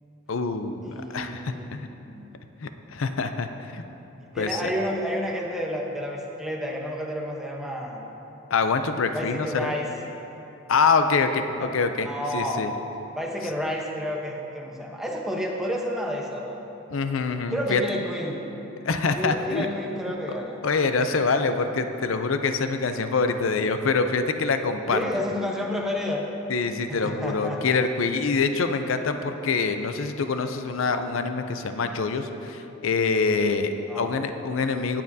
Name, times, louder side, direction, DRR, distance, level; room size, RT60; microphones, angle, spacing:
voice 1, 0.3-1.9 2.6-3.8 4.4-4.7 8.5-9.7 10.7-12.1 12.3-12.7 16.9-17.8 18.8-19.7 20.6-25.0 26.5-35.0, left 4 dB, 90° left, 8 dB, 0.5 m, -25 dB
voice 2, 0.8-1.7 2.0-2.3 4.3-8.0 9.1-9.9 11.5-11.7 12.0-12.7 13.1-16.6 17.5-18.5 19.2-20.6 24.9-26.3 26.9-27.8 33.8-34.1, equal, ahead, -2 dB, 1.0 m, -30 dB
18.0 x 7.4 x 2.8 m, 3.0 s
head